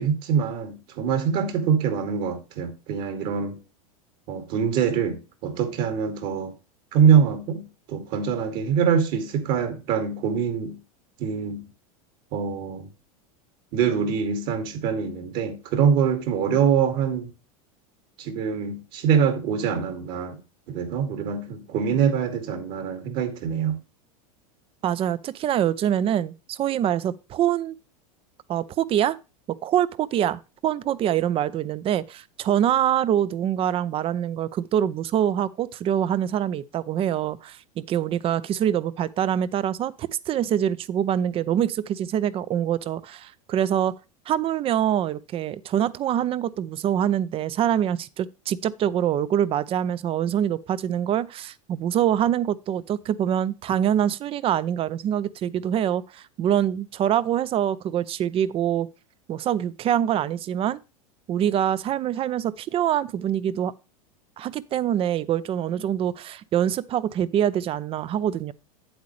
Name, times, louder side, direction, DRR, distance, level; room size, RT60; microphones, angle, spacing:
voice 1, 0.0-3.6 4.3-6.5 6.9-10.8 11.2-11.7 12.3-12.9 13.7-17.3 18.2-20.4 20.7-23.8, right 7 dB, 55° right, 2.4 m, -24 dB
voice 2, 24.8-27.7 28.5-29.2 29.5-43.9 44.3-58.9 59.3-60.8 61.3-63.7 64.4-68.5, right 10 dB, 30° right, 0.6 m, -25 dB
8.5 x 8.0 x 3.2 m
supercardioid pair, 125°, 19 cm